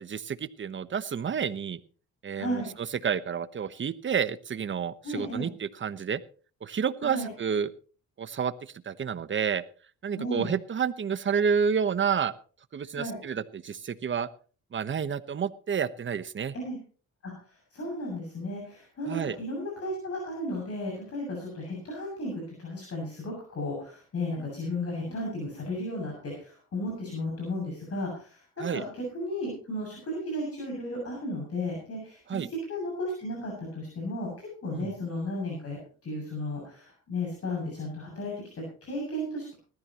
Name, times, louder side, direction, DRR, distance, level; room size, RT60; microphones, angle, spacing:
voice 1, 0.0-1.8 2.2-2.6 3.0-6.2 6.6-7.7 8.2-9.6 10.0-12.3 12.7-14.3 14.7-16.5 19.1-19.4 28.6-28.8 32.3-32.5 34.7-34.9, right 7 dB, 40° right, 14 dB, 1.1 m, -30 dB
voice 2, 2.3-2.7 5.0-5.5 7.0-7.3 10.2-10.5 12.9-13.2 16.5-16.8 17.2-17.3 17.7-22.3 22.6-39.6, left 1 dB, 50° left, -1 dB, 7.2 m, -34 dB
19.5 x 13.5 x 3.0 m, 0.39 s
cardioid pair, 90°, 30 cm